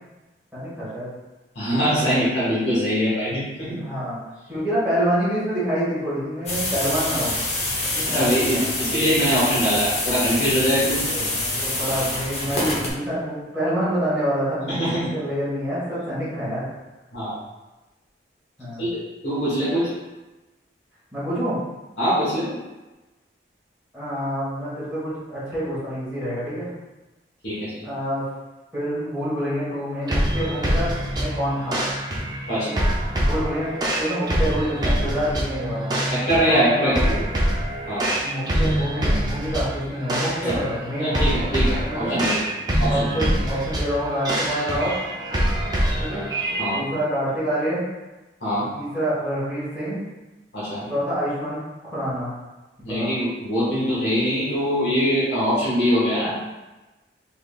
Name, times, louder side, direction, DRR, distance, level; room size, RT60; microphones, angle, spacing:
voice 1, 0.5-1.1 3.8-4.2 4.5-7.3 7.9-9.0 11.1-14.8 15.1-16.7 18.6-18.9 21.1-21.6 23.9-26.7 27.8-28.2 28.7-30.9 31.1-31.8 32.6-32.9 33.2-33.7 34.0-35.9 36.4-37.2 38.2-41.2 41.8-42.2 42.9-44.9 46.0-46.2 46.7-47.8 48.7-50.0 50.9-52.3 52.8-53.1, equal, 5° right, -13 dB, 1.4 m, -27 dB
voice 2, 1.5-3.8 8.1-11.0 11.8-11.9 14.7-15.1 17.1-17.4 18.8-19.9 22.0-22.5 27.4-27.8 32.5-32.7 36.1-37.0 37.9-38.0 40.5-40.6 41.0-42.4 42.8-43.1 46.6-46.8 48.4-48.7 50.5-50.9 52.8-56.4, equal, 80° left, -9 dB, 1.3 m, -23 dB
sound 1, 6.5-12.9, left 2 dB, 35° left, 0.8 m, -26 dB
sound 2, 30.1-46.8, right 1 dB, 20° right, 0.5 m, -25 dB
3.6 x 3.5 x 2.4 m, 1.1 s
head